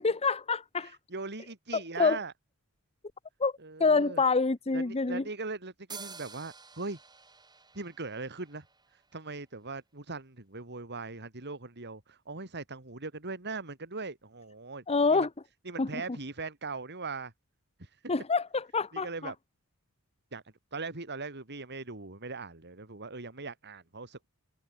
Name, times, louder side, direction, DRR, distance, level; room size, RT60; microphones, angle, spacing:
voice 1, 0.0-1.0 2.0-2.2 3.4-3.5 3.8-5.2 14.9-15.3 15.8-15.9 18.1-19.3, left 4 dB, 30° left, 0.9 m, -26 dB
voice 2, 0.8-2.3 3.6-4.2 4.7-7.0 7.7-8.6 8.9-14.8 15.1-15.3 15.6-17.3 17.8-18.0 18.9-19.3 20.3-20.4 20.7-24.3, right 3 dB, 50° right, 3.4 m, -40 dB
sound 1, 5.9-9.4, right 5 dB, 20° right, 7.4 m, -49 dB
head